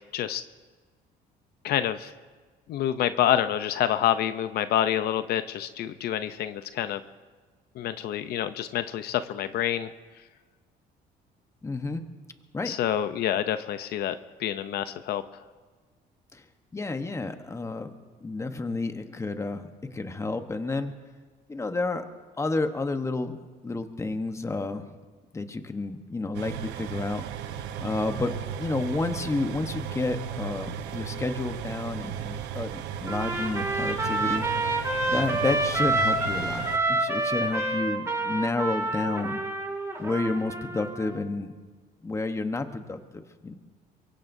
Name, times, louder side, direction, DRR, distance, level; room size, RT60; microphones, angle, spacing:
voice 1, 1.6-2.1 2.7-7.0 7.8-9.9 12.6-14.1 14.4-15.2, left 11 dB, 70° left, 11 dB, 0.7 m, -27 dB
voice 2, 11.6-12.0 12.5-12.7 16.3-16.4 16.7-17.9 18.2-21.0 21.5-22.0 22.4-23.4 23.6-24.9 25.3-27.2 27.8-39.4 40.0-41.5 42.0-43.5, left 3 dB, 15° left, 8 dB, 1.0 m, -30 dB
sound 1, 26.3-36.8, right 8 dB, 85° right, 0.9 m, -36 dB
Trumpet, 33.1-41.2, right 2 dB, 15° right, 2.4 m, -28 dB
23.5 x 23.0 x 2.7 m, 1.4 s
cardioid pair, 110°, 17 cm